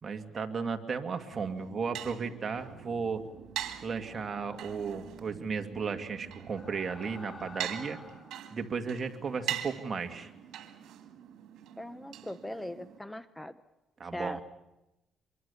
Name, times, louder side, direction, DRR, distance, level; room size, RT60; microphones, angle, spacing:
voice 1, 0.0-3.2 3.8-8.0 8.5-10.3 14.0-14.4, right 5 dB, 40° right, 5 dB, 2.3 m, -35 dB
sound 1, 1.3-7.6, right 4 dB, 55° right, 3.8 m, -53 dB
sound 2, 1.3-13.0, right 11 dB, 80° right, 2.1 m, -43 dB
sound 3, 3.9-5.1 6.3-8.5, left 3 dB, 25° left, 4.2 m, -50 dB
voice 2, 11.8-13.6 14.1-14.4, left 1 dB, 10° left, 13 dB, 0.8 m, -40 dB
24.5 x 23.5 x 7.0 m, 0.94 s
cardioid pair, 90°, 0 cm